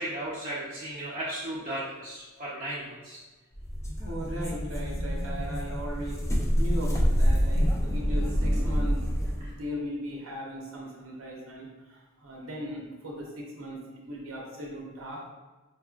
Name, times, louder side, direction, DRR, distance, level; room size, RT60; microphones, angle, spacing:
voice 1, 0.0-3.2 9.4-9.6, right 1 dB, 40° right, -9 dB, 0.6 m, -35 dB
sound 1, 3.5-9.5, equal, 15° left, 0.3 m, -27 dB
voice 2, 4.0-15.3, equal, 70° right, -2 dB, 0.8 m, -38 dB
4.6 x 2.3 x 2.3 m, 1.2 s
head